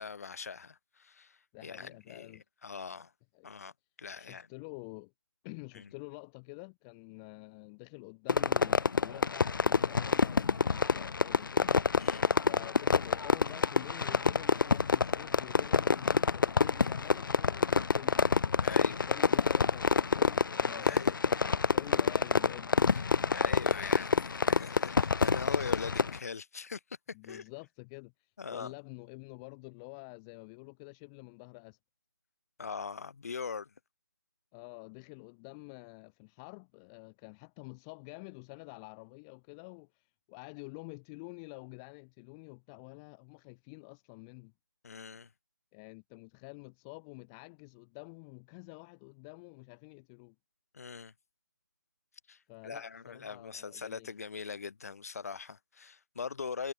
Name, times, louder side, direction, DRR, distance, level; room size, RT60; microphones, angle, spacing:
voice 1, 0.0-3.1 3.4-3.7 4.0-4.5 5.7-5.9 12.0-12.4 18.6-19.0 20.8-21.2 22.9-23.0 23.3-26.8 27.2-27.4 28.4-28.7 32.6-33.7 44.8-45.3 50.7-51.1 52.3-56.7, left 5 dB, 45° left, 3.6 m, -41 dB
voice 2, 1.5-2.4 3.3-3.5 4.2-5.1 5.4-12.2 12.4-18.2 18.5-22.8 27.1-31.8 34.5-44.5 45.7-50.3 52.5-54.1, left 32 dB, 10° left, 1.2 m, -48 dB
Fireworks, 8.3-26.2, left 5 dB, 75° left, 0.4 m, -28 dB
figure-of-eight pair, 165°, 11 cm